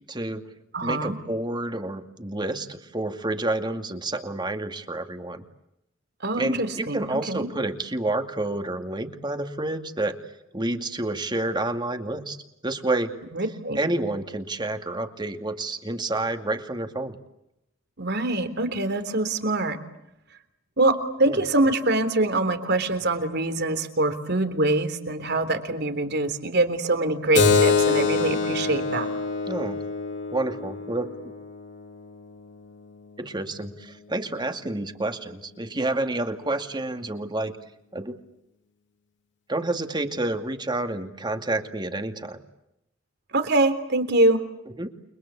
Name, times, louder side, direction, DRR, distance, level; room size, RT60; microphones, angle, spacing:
voice 1, 0.1-0.4 0.8-5.4 6.3-10.2 10.5-12.4 12.6-13.1 13.7-17.2 21.3-21.4 29.5-29.8 30.3-31.3 33.2-37.5 37.9-38.1 39.5-42.4 44.8-44.9, right 2 dB, 20° right, 7 dB, 2.4 m, -29 dB
voice 2, 0.7-1.2 6.2-7.5 13.3-13.8 18.0-19.8 20.8-20.9 21.2-29.1 43.3-44.4, right 2 dB, 55° right, 10 dB, 3.6 m, -24 dB
Keyboard (musical), 27.3-32.5, left 5 dB, 60° left, 3.8 m, -25 dB
30.0 x 23.0 x 8.4 m, 0.83 s
head